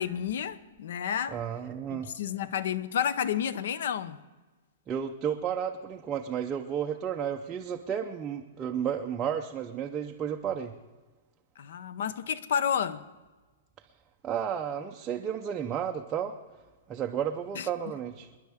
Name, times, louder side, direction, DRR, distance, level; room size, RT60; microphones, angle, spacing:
voice 1, 0.0-1.4 1.9-4.2 11.6-13.0 17.5-17.7, left 8 dB, 55° left, 0.7 m, -31 dB
voice 2, 1.3-2.1 4.9-10.7 14.2-16.4 16.9-18.3, right 8 dB, 15° right, 0.5 m, -32 dB
27.0 x 10.5 x 3.5 m
hypercardioid pair, 175°, 0 cm